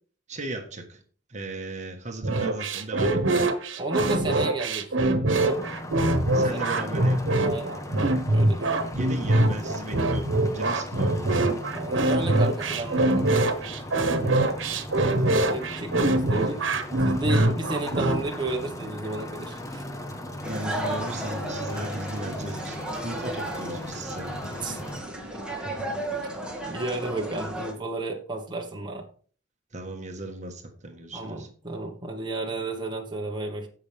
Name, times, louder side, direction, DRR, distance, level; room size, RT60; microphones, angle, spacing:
voice 1, 0.3-1.0 1.3-3.4 5.0-5.1 6.3-7.3 8.9-10.3 10.5-11.4 14.9-15.3 20.4-22.8 23.0-24.3 25.6-25.8 29.7-31.5, right 2 dB, 40° right, 4 dB, 1.5 m, -36 dB
sound 1, 2.2-18.2, right 2 dB, 90° right, 1.3 m, -23 dB
voice 2, 3.8-4.9 5.3-5.7 6.3-6.6 7.4-7.8 8.3-9.0 11.7-13.5 15.0-16.6 17.0-19.8 24.4-24.8 26.6-29.1 31.1-33.7, right 2 dB, 25° right, 1 dB, 1.4 m, -32 dB
sound 2, 5.4-25.0, left 1 dB, 15° left, 1.2 m, -38 dB
sound 3, 20.4-27.7, right 1 dB, 5° right, 2.2 m, -34 dB
16.0 x 5.9 x 3.5 m, 0.43 s
head